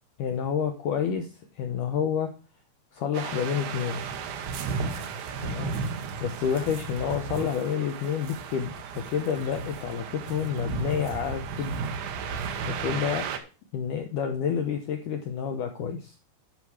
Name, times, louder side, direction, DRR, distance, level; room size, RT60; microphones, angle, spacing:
voice 1, 0.2-1.3 1.5-2.3 2.9-4.0 5.4-5.7 6.2-11.8 12.7-13.3 13.7-16.1, left 8 dB, 75° left, 5 dB, 1.9 m, -29 dB
sound 1, 3.1-13.4, right 5 dB, 70° right, 2.0 m, -34 dB
11.0 x 6.1 x 4.8 m, 0.33 s
omnidirectional pair, 4.9 m